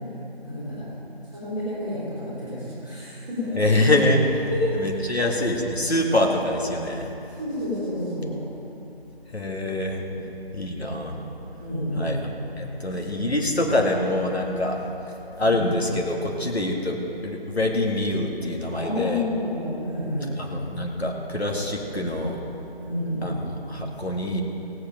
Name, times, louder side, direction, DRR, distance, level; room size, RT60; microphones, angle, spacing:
voice 1, 0.4-0.9 1.2-3.5 4.5-5.2 7.4-8.3 11.6-12.2 12.8-13.0 18.7-20.4 22.8-23.4, left 1 dB, 5° left, -21 dB, 1.9 m, -30 dB
voice 2, 3.5-7.1 9.3-10.0 10.5-11.2 12.0-12.2 12.6-14.8 15.4-17.0 17.2-19.2 20.4-22.4 23.2-24.4, left 1 dB, 85° left, 0 dB, 2.1 m, -25 dB
16.5 x 8.4 x 5.1 m, 3.0 s
figure-of-eight pair, 175°, 31 cm